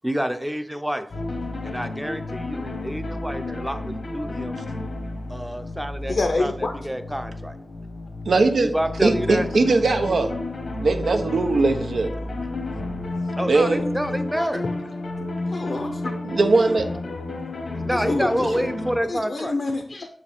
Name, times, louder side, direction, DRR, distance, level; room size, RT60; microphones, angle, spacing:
voice 1, 0.0-1.1 1.6-4.6 5.3-7.5 8.5-9.5 11.1-11.2 13.4-14.7 17.9-19.5, equal, 5° right, 8 dB, 0.5 m, -28 dB
sound 1, 1.1-19.0, left 2 dB, 85° left, 1.2 m, -31 dB
voice 2, 6.1-6.7 14.4-14.5 15.5-16.1 17.9-18.6 19.1-20.1, left 3 dB, 65° left, 4 dB, 0.6 m, -27 dB
voice 3, 8.3-8.7 9.0-10.3 10.8-12.1 13.5-13.8 16.2-16.9, right 3 dB, 90° right, 6 dB, 0.7 m, -20 dB
6.6 x 4.9 x 3.4 m, 0.63 s
wide cardioid pair, 100°, 0 cm